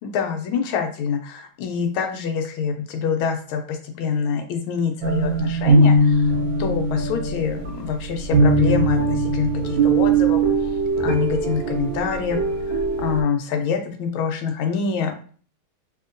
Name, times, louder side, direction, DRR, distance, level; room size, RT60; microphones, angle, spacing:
voice 1, 0.0-6.3 6.6-10.4 11.0-12.4 12.7-15.3, left 6 dB, 85° left, 5 dB, 1.4 m, -25 dB
sound 1, 5.0-13.2, right 2 dB, 85° right, 1.5 m, -20 dB
3.5 x 2.8 x 2.5 m, 0.42 s
omnidirectional pair, 2.3 m